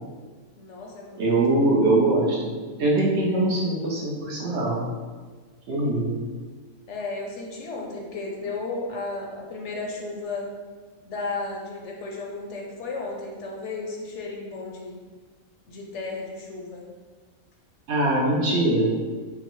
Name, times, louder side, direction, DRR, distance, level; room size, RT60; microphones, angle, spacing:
voice 1, 0.6-1.3 6.9-10.4 11.0-15.0 15.7-16.8, left 3 dB, 65° left, 0 dB, 0.8 m, -34 dB
voice 2, 1.2-4.9 5.7-6.2 17.9-18.9, right 2 dB, 60° right, -3 dB, 0.9 m, -22 dB
5.8 x 2.0 x 3.0 m, 1.4 s
omnidirectional pair, 1.4 m